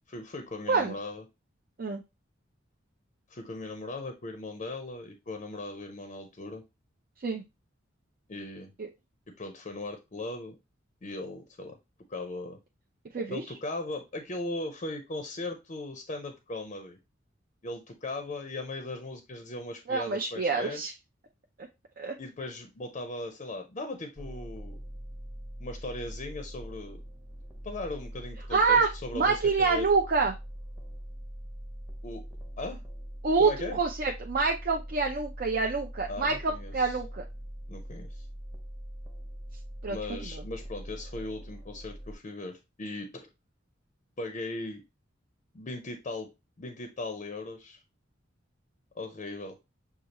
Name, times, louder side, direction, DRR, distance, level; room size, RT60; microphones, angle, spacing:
voice 1, 0.1-1.2 3.3-6.6 8.3-8.7 9.3-10.6 11.0-11.7 12.1-12.6 13.3-17.0 17.6-20.9 22.2-24.8 25.6-27.0 27.6-29.9 32.0-32.2 32.6-32.8 33.4-33.8 36.1-37.0 37.7-38.3 39.9-43.3 44.2-44.8 45.5-46.3 46.6-47.8 49.0-49.6, left 2 dB, 40° left, 6 dB, 0.6 m, -38 dB
voice 2, 19.9-20.9 22.0-22.2 28.5-28.9 29.1-30.3 33.2-37.2 39.8-40.0 40.3-40.4, right 4 dB, 50° right, 2 dB, 0.5 m, -26 dB
sound 1, 24.2-42.1, equal, 10° right, 0.8 m, -42 dB
6.4 x 2.3 x 2.9 m, 0.24 s
head